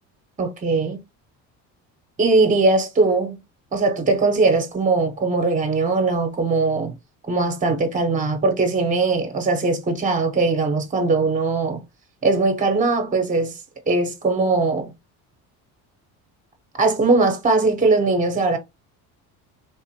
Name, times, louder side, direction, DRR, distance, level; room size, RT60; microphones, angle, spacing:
voice 1, 0.4-1.0 2.2-3.4 3.7-6.9 7.3-11.8 12.2-13.6 13.9-14.9 16.7-18.6, right 3 dB, 20° right, 0.9 m, -20 dB
3.7 x 2.4 x 2.8 m
supercardioid pair, 85°, 38 cm